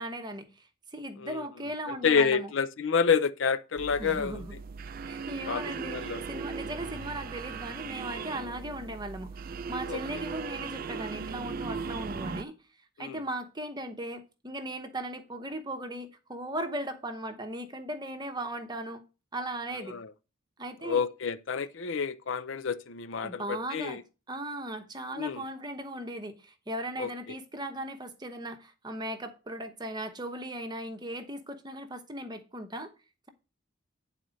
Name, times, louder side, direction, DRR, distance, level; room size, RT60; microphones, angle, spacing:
voice 1, 0.0-2.5 4.0-4.5 5.1-9.4 9.7-12.6 13.0-19.0 19.3-20.0 20.6-21.0 23.2-24.0 24.3-32.9, right 1 dB, 20° right, 0.9 m, -38 dB
voice 2, 1.2-4.4 5.5-6.2 9.9-10.2 13.0-13.2 19.8-20.1 20.8-24.0 25.2-25.4 27.0-27.1, left 6 dB, 60° left, 0.5 m, -29 dB
sound 1, 3.8-12.4, right 5 dB, 40° right, 0.4 m, -38 dB
9.3 x 4.2 x 6.3 m
head